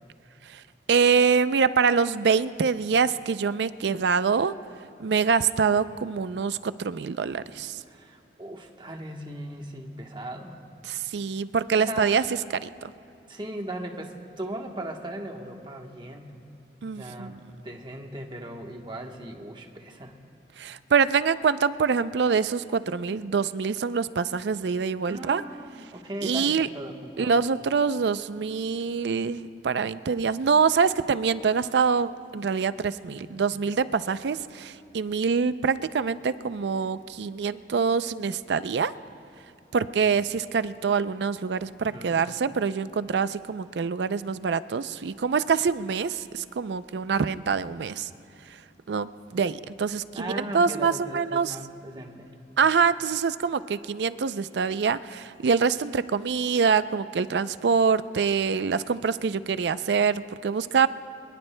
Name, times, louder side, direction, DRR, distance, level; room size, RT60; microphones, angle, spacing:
voice 1, 0.9-4.5 5.0-7.8 10.8-12.2 12.5-12.9 16.8-17.3 20.6-25.4 26.2-26.7 27.2-38.9 39.7-48.1 48.9-51.6 52.6-60.9, right 5 dB, 75° right, 14 dB, 0.4 m, -25 dB
voice 2, 7.9-10.6 11.8-12.2 13.3-16.3 16.9-17.4 17.6-20.2 25.1-27.4 33.2-33.4 41.8-42.2 50.1-52.3, right 1 dB, 25° right, 2 dB, 1.1 m, -38 dB
24.0 x 22.0 x 2.2 m, 2.6 s
head